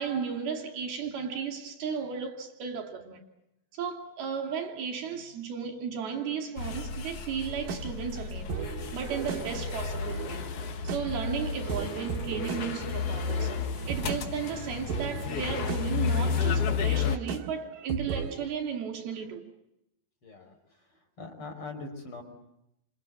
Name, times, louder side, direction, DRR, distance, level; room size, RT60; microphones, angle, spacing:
voice 1, 0.0-3.2 3.7-8.6 8.9-10.4 10.8-13.5 13.9-19.5, right 6 dB, 90° right, 4.6 m, -34 dB
sound 1, 6.6-17.2, left 6 dB, 55° left, 1.9 m, -32 dB
sound 2, 7.5-18.5, right 6 dB, 70° right, 3.5 m, -38 dB
voice 2, 20.2-22.2, left 3 dB, 35° left, 6.0 m, -43 dB
28.5 x 27.0 x 7.7 m
omnidirectional pair, 4.3 m